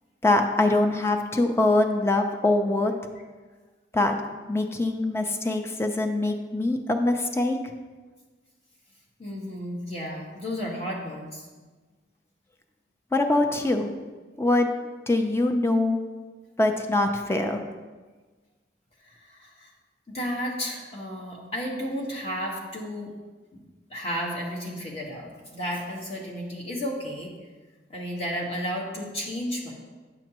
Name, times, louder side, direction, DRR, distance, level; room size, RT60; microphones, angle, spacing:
voice 1, 0.2-2.9 3.9-4.1 4.5-7.6 13.1-13.9 14.4-14.7 15.1-16.0 16.6-17.6, left 2 dB, 15° left, 5 dB, 0.5 m, -23 dB
voice 2, 9.2-11.5 19.0-19.7 20.1-23.1 23.9-27.3 27.9-29.7, equal, 35° left, -3 dB, 1.5 m, -33 dB
9.8 x 6.4 x 2.9 m, 1.3 s
head